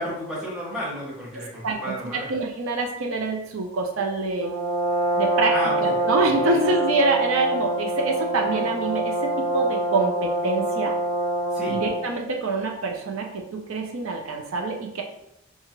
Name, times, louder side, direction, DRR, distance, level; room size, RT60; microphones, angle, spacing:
voice 1, 0.0-2.3 5.5-5.9 6.4-6.6 11.5-11.8, equal, 5° right, -7 dB, 0.8 m, -32 dB
voice 2, 1.3-4.5 5.2-5.5 5.8-11.0 11.7-15.0, right 3 dB, 80° right, 2 dB, 0.5 m, -26 dB
Brass instrument, 4.4-12.1, right 1 dB, 25° right, 1.2 m, -25 dB
2.7 x 2.4 x 2.9 m, 0.79 s
head